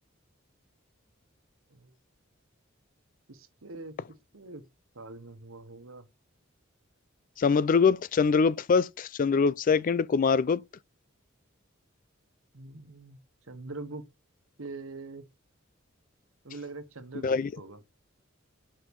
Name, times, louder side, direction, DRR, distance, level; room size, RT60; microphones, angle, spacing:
voice 1, 3.3-3.9 4.3-4.6 4.9-6.1 12.5-13.2 13.5-14.0 14.6-15.2 16.4-17.8, right 3 dB, 85° right, 1.2 m, -43 dB
voice 2, 7.4-10.6 17.2-17.5, left 5 dB, 40° left, 0.3 m, -24 dB
5.6 x 5.3 x 4.6 m
head